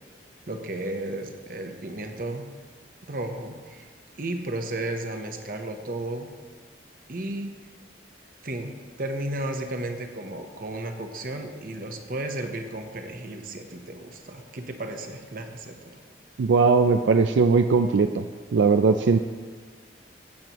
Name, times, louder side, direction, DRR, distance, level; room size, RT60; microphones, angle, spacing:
voice 1, 0.5-2.5 3.1-3.9 4.2-6.3 7.1-7.6 8.4-16.0, right 1 dB, 50° right, 5 dB, 0.9 m, -33 dB
voice 2, 16.4-18.2 18.5-19.2, right 4 dB, 80° right, 8 dB, 0.4 m, -19 dB
16.0 x 7.8 x 3.0 m, 1.5 s
head